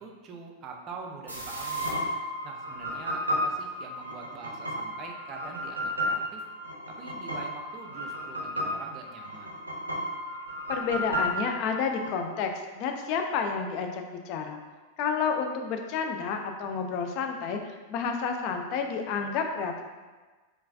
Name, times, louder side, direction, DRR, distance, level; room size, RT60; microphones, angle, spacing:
voice 1, 0.0-2.0 2.4-6.4 6.9-9.6, right 4 dB, 35° right, 2 dB, 0.4 m, -44 dB
sound 1, 1.3-12.1, equal, 85° right, 0.5 m, -33 dB
voice 2, 10.7-14.6 15.0-19.8, left 5 dB, 45° left, 4 dB, 0.3 m, -30 dB
3.8 x 2.3 x 2.5 m, 1.3 s
figure-of-eight pair, 90°, 0 cm